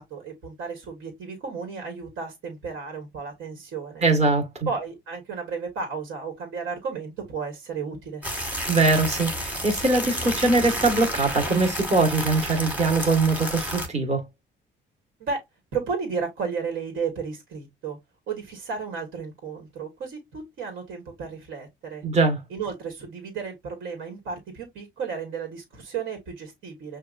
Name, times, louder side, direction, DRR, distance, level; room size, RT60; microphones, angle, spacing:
voice 1, 0.0-4.0 4.6-8.2 15.2-15.4 15.7-18.0 18.3-22.0 22.5-27.0, right 5 dB, 80° right, 1.5 m, -33 dB
voice 2, 4.0-4.7 8.7-14.2 22.0-22.4, right 3 dB, 35° right, 1.4 m, -22 dB
sound 1, 8.2-13.9, equal, 5° right, 1.3 m, -31 dB
5.8 x 2.4 x 2.4 m
cardioid pair, 90°, 20 cm